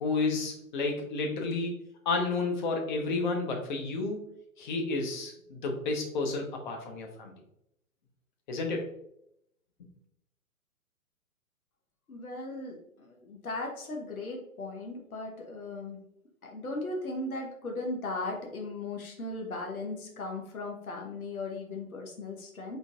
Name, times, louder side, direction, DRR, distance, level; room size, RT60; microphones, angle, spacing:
voice 1, 0.0-1.8 2.0-4.2 4.6-7.4 8.5-8.9 9.8-9.9, left 3 dB, 35° left, 2 dB, 0.8 m, -31 dB
voice 2, 12.1-16.0 16.4-22.8, left 2 dB, 80° left, 1 dB, 1.0 m, -37 dB
3.9 x 3.8 x 2.4 m, 0.76 s
figure-of-eight pair, 125°, 42 cm